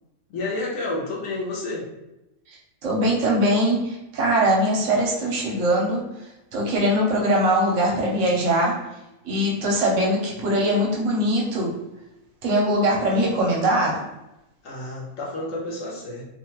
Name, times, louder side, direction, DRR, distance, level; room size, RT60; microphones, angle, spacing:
voice 1, 0.3-1.9 14.6-16.2, left 2 dB, 70° left, -4 dB, 1.1 m, -30 dB
voice 2, 2.8-6.0 6.5-8.7 9.2-11.7 12.4-14.0, right 1 dB, 65° right, -2 dB, 0.9 m, -21 dB
2.7 x 2.2 x 2.9 m, 0.92 s
omnidirectional pair, 1.5 m